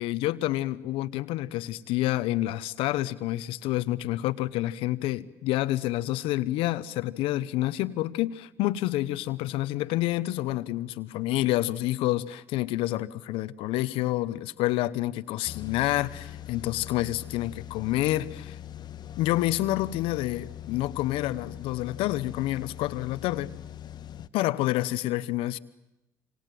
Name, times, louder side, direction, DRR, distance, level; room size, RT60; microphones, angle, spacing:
voice 1, 0.0-18.6 19.2-23.5 24.3-25.6, left 16 dB, 70° left, 1.0 m, -28 dB
sound 1, 15.5-24.3, left 11 dB, 50° left, 1.1 m, -42 dB
27.0 x 26.5 x 7.7 m
hypercardioid pair, 70°, 10 cm